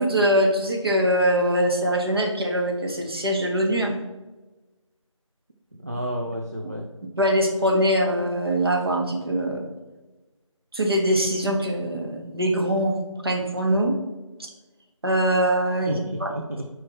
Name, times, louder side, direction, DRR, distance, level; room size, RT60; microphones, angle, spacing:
voice 1, 0.0-4.0 7.2-9.6 10.7-13.0 13.2-13.9 14.4-14.5 15.0-16.3, equal, 45° right, 2 dB, 1.4 m, -23 dB
voice 2, 5.7-6.9 15.8-16.7, equal, 30° right, 0 dB, 0.5 m, -31 dB
9.2 x 4.4 x 4.2 m, 1.1 s
figure-of-eight pair, 175°, 17 cm